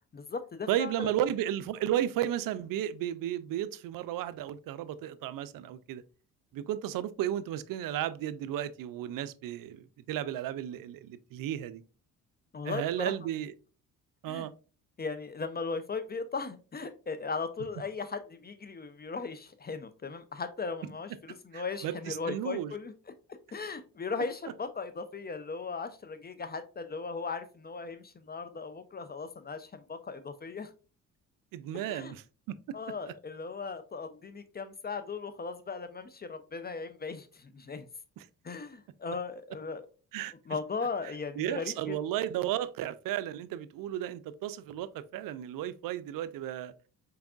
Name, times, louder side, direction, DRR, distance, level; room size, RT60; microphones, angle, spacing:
voice 1, 0.1-1.1 12.5-13.3 14.3-14.5 15.0-23.1 23.5-30.7 31.7-32.1 32.7-37.9 38.4-39.8 40.5-42.0, left 4 dB, 25° left, 0.5 m, -37 dB
voice 2, 0.7-6.0 6.5-11.8 12.6-13.5 14.2-14.5 21.5-22.7 31.5-32.2 32.5-32.8 38.2-38.3 40.1-40.3 41.4-46.7, right 11 dB, 60° right, 0.5 m, -33 dB
4.6 x 3.4 x 2.4 m
supercardioid pair, 55°, 38 cm